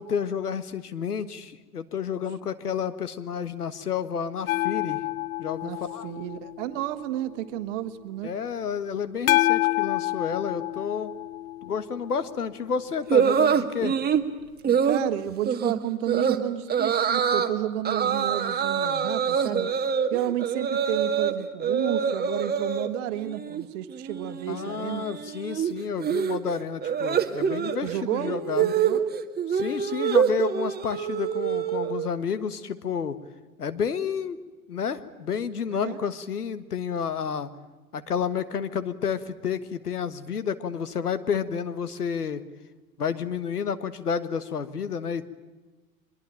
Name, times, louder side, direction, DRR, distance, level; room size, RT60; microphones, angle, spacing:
voice 1, 0.0-5.0 5.4-6.1 8.2-11.1 11.6-14.0 24.5-28.7 29.5-33.2 33.6-34.4 34.7-37.5 37.9-42.4 43.0-45.3, left 7 dB, 85° left, 12 dB, 1.6 m, -30 dB
sound 1, 4.5-7.3 9.3-12.5 15.3-15.4, left 16 dB, 65° left, 0.7 m, -28 dB
voice 2, 5.6-8.3 14.8-19.7 20.1-25.1 27.8-29.0 35.8-36.1, right 13 dB, 55° right, 12 dB, 1.7 m, -31 dB
sound 2, 13.1-14.2 14.6-15.0 15.5-15.7 16.1-16.4 16.7-17.5 17.8-21.3 21.6-22.9 23.2-23.6 23.9-32.1, right 7 dB, 20° right, 1.9 m, -25 dB
24.0 x 22.0 x 9.1 m, 1.2 s
hypercardioid pair, 90°, 45 cm